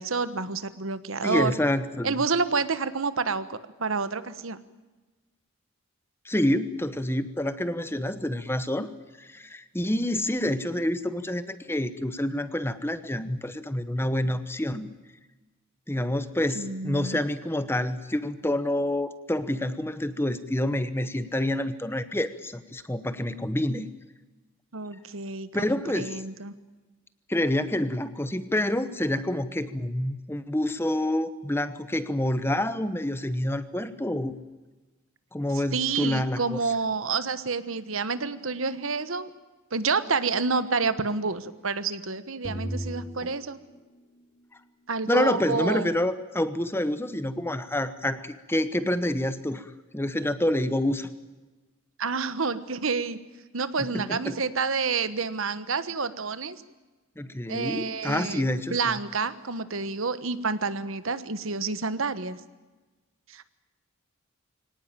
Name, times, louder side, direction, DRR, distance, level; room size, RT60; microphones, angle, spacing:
voice 1, 0.0-1.5 2.0-4.6 16.5-17.2 24.7-26.5 35.7-39.3 39.7-43.6 44.9-45.9 52.0-53.2 53.5-56.6 57.5-62.4 63.3-63.4, right 4 dB, 70° right, 13 dB, 1.2 m, -29 dB
voice 2, 1.2-2.1 6.2-8.9 9.2-14.9 15.9-23.9 25.5-26.2 27.3-34.4 35.3-36.6 45.1-51.1 53.8-54.4 57.2-58.8, left 1 dB, 10° left, 12 dB, 1.0 m, -28 dB
sound 1, 42.4-44.6, equal, 30° left, 2.4 m, -37 dB
24.0 x 18.0 x 9.0 m, 1.2 s
head